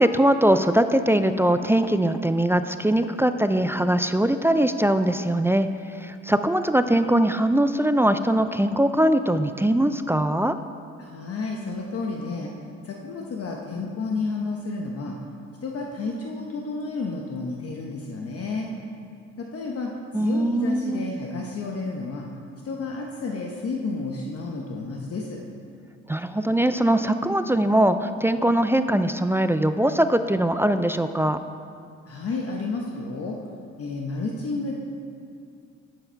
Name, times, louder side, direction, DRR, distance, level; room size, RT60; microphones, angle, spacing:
voice 1, 0.0-5.7 5.9-10.6 20.1-21.1 26.1-31.4, right 1 dB, 10° right, 9 dB, 0.3 m, -21 dB
voice 2, 11.0-12.5 12.8-15.2 15.6-18.7 19.4-22.3 22.6-25.4 32.1-33.4 33.8-34.7, left 3 dB, 50° left, 0 dB, 1.1 m, -31 dB
11.0 x 8.0 x 4.6 m, 2.4 s
cardioid pair, 90°, 30 cm